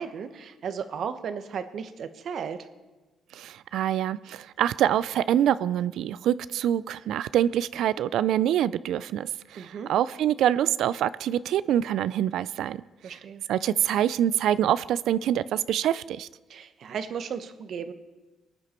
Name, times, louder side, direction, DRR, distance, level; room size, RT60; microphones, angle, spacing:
voice 1, 0.0-2.7 9.5-9.9 13.0-13.4 16.5-17.9, right 7 dB, 60° right, 10 dB, 1.1 m, -35 dB
voice 2, 3.3-13.2 13.5-16.3, right 11 dB, 80° right, 17 dB, 0.3 m, -25 dB
24.0 x 9.8 x 4.4 m, 1.2 s
cardioid pair, 90°, 0 cm